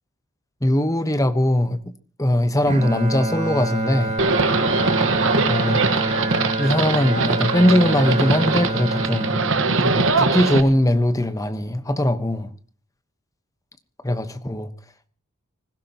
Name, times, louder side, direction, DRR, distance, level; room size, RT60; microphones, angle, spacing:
voice 1, 0.6-1.8 2.2-4.2 5.5-5.8 6.6-9.4 9.8-12.5 14.0-14.7, left 1 dB, 15° left, 1.1 m, -20 dB
Bowed string instrument, 2.7-10.9, right 2 dB, 30° right, 2.0 m, -27 dB
Livestock farm animals working animals, 4.2-10.6, right 3 dB, 60° right, 1.4 m, -22 dB
25.0 x 16.0 x 2.9 m
head